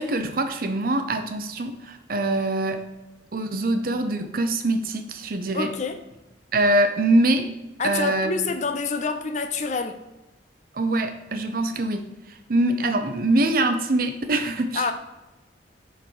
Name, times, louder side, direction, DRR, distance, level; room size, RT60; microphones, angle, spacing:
voice 1, 0.0-2.8 3.3-5.8 6.5-7.5 7.8-8.5 10.7-14.9, right 2 dB, 55° right, 0.7 m, -24 dB
voice 2, 5.5-6.0 7.8-10.0 14.7-14.9, left 4 dB, 45° left, 0.5 m, -27 dB
5.7 x 4.6 x 4.7 m
head